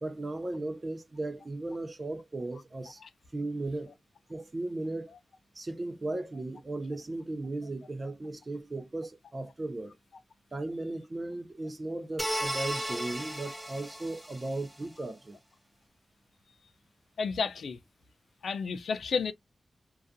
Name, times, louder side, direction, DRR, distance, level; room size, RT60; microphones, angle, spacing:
voice 1, 0.0-3.0 3.3-3.9 4.3-5.1 5.5-9.9 10.5-15.4, right 2 dB, 35° right, 0.5 m, -36 dB
sound 1, 12.2-14.7, equal, 10° right, 0.8 m, -35 dB
voice 2, 17.2-17.8 18.4-19.3, left 5 dB, 80° left, 0.4 m, -31 dB
2.3 x 2.3 x 2.6 m
cardioid pair, 80°, 0 cm